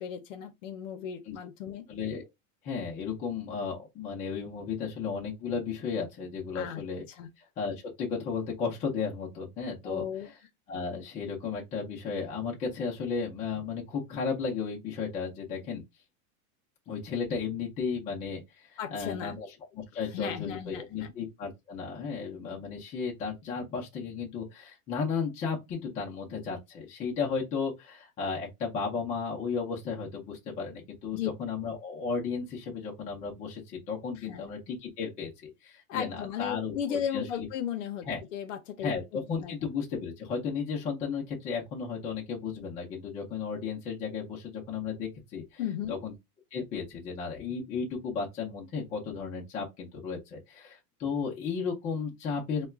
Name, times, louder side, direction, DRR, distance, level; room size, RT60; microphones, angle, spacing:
voice 1, 0.0-1.9 6.5-6.8 7.1-7.3 9.8-10.3 18.8-19.4 20.0-21.1 31.1-31.3 34.2-34.5 35.9-39.5 45.6-46.0, left 9 dB, 60° left, 0.7 m, -36 dB
voice 2, 1.9-2.3 2.6-7.0 7.6-10.0 10.7-15.8 16.9-18.4 18.9-19.5 19.7-37.5 38.1-38.2 38.8-45.6 45.9-46.1 46.5-52.7, left 5 dB, 15° left, 0.6 m, -34 dB
4.1 x 2.3 x 2.3 m
supercardioid pair, 160°, 43 cm